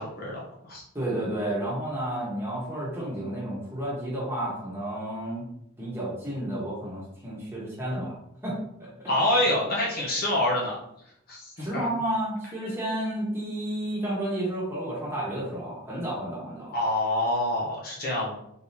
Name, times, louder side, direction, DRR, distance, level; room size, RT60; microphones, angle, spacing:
voice 1, 0.0-0.8 9.1-10.8 11.3-11.9 16.7-18.3, left 1 dB, 45° left, -4 dB, 1.1 m, -26 dB
voice 2, 0.9-5.4 5.8-8.2 8.4-9.1 11.6-16.7, right 1 dB, 10° right, -6 dB, 1.4 m, -31 dB
3.9 x 3.9 x 2.8 m, 0.77 s
head